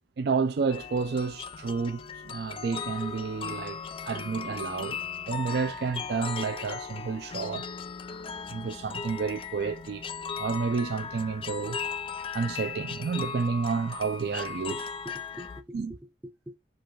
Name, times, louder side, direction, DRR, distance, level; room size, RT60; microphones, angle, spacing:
voice 1, 0.2-5.0 5.3-7.7 8.5-10.0 10.4-11.8 12.3-14.9 15.7-15.9, right 5 dB, 65° right, 0.4 m, -30 dB
sound 1, 0.7-15.6, left 6 dB, 30° left, 0.3 m, -37 dB
voice 2, 14.7-16.6, equal, 10° right, 0.6 m, -46 dB
7.0 x 2.4 x 3.1 m
head